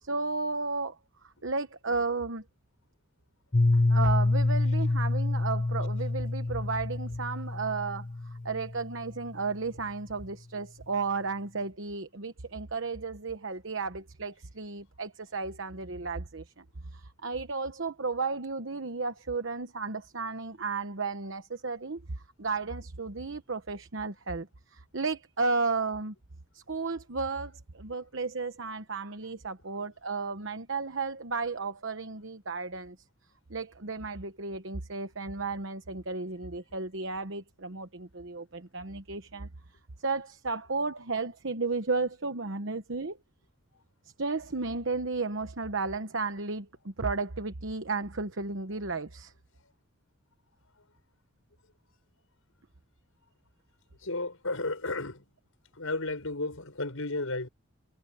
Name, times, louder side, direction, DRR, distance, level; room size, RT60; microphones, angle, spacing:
voice 1, 0.0-2.4 3.7-26.1 26.5-33.0 33.5-39.5 40.0-43.2 44.2-49.3, right 4 dB, 60° right, 1.1 m, -34 dB
Piano, 3.5-9.2, left 2 dB, 35° left, 0.9 m, -27 dB
voice 2, 54.0-55.3 55.7-57.5, left 2 dB, 75° left, 5.3 m, -33 dB
head